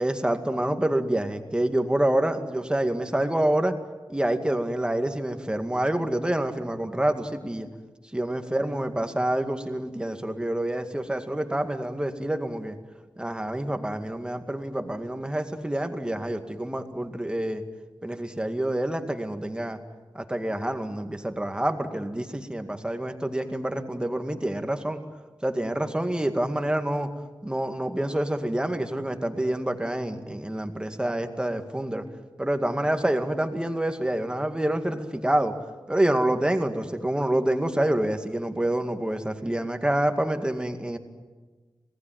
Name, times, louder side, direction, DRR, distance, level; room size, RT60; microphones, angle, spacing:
voice 1, 0.0-3.8 4.1-7.7 8.1-12.8 13.2-17.6 18.0-19.8 20.1-25.0 25.4-27.1 27.4-32.0 32.4-35.5 35.9-41.0, right 1 dB, 10° right, 6 dB, 2.1 m, -27 dB
26.5 x 18.5 x 9.4 m, 1.3 s
wide cardioid pair, 100°, 7 cm